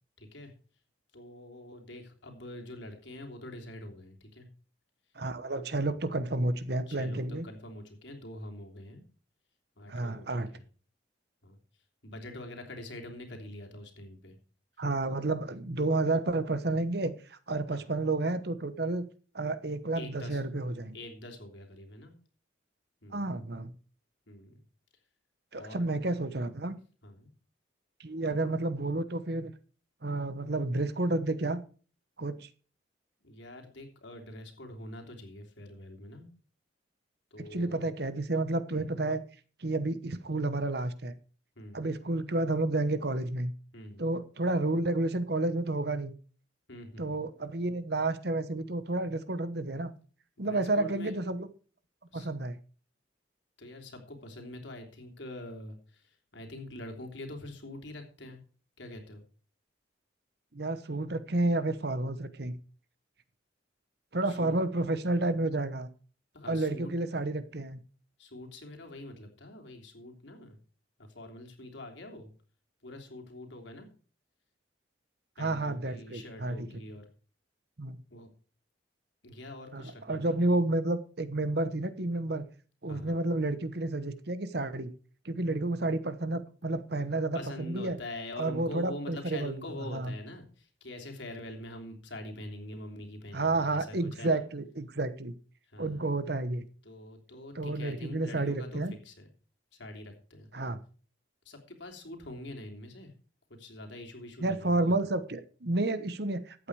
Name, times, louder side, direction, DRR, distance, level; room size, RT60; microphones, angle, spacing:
voice 1, 0.2-0.5 1.1-4.5 5.8-6.0 6.9-9.0 9.8-10.6 11.4-11.6 12.0-14.4 17.7-17.8 19.9-20.4 20.9-22.1 23.0-23.4 24.3-24.6 25.5-25.9 27.0-27.3 33.2-36.3 37.3-37.9 38.7-38.9 41.6-41.9 43.7-44.0 46.7-47.2 50.4-51.1 52.1-52.3 53.6-58.4 58.8-59.2 64.2-64.6 66.3-66.9 68.2-70.6 71.0-72.3 72.8-73.9 75.4-77.1 78.1-78.3 79.2-80.4 82.9-83.2 87.0-87.1 87.3-94.4 95.7-96.1 96.8-99.3 99.7-100.5 101.4-103.1 103.5-105.0, left 1 dB, 70° left, 3 dB, 3.2 m, -45 dB
voice 2, 5.2-7.4 9.9-10.5 14.8-19.1 19.3-21.0 23.1-23.7 25.5-26.8 28.0-29.5 30.0-31.6 32.2-32.5 37.5-39.2 39.6-41.1 41.7-43.5 44.0-46.1 47.0-49.9 50.4-51.5 52.1-52.6 60.5-62.6 64.1-65.9 66.5-67.8 75.4-76.7 77.8-78.0 79.7-82.4 82.8-84.9 85.2-88.0 88.4-89.6 89.9-90.1 93.3-95.3 95.8-96.7 97.5-98.9 100.5-100.8 104.4-106.7, right 2 dB, 55° right, 13 dB, 1.0 m, -30 dB
14.0 x 8.7 x 4.8 m, 0.39 s
head